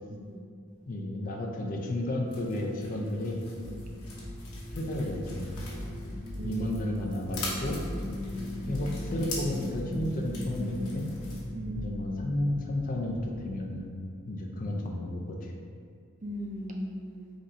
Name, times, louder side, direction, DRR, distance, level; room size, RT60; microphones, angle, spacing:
voice 1, 0.9-3.5 4.7-5.8 6.4-7.8 8.1-8.2 8.7-11.1 11.8-13.9 14.3-15.5, left 1 dB, 35° left, 1 dB, 0.4 m, -32 dB
sound 1, 2.3-11.4, left 2 dB, 85° left, 1.0 m, -44 dB
sound 2, 3.6-13.7, left 1 dB, 10° left, 0.8 m, -38 dB
voice 2, 6.3-6.7 11.5-11.9 16.2-17.3, right 1 dB, 35° right, 0 dB, 0.4 m, -38 dB
3.9 x 2.6 x 4.2 m, 2.3 s
head